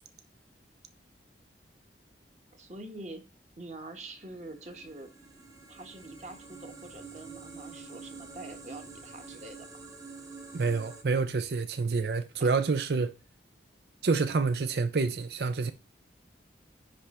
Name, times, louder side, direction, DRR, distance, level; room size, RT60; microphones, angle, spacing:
voice 1, 2.5-3.2 3.6-5.1 5.7-9.6 12.4-12.5, right 2 dB, 40° right, 1.4 m, -45 dB
sound 1, 4.2-11.0, right 4 dB, 20° right, 0.9 m, -47 dB
voice 2, 10.5-13.1 14.0-15.7, right 4 dB, 60° right, 0.5 m, -28 dB
10.0 x 3.4 x 4.3 m
head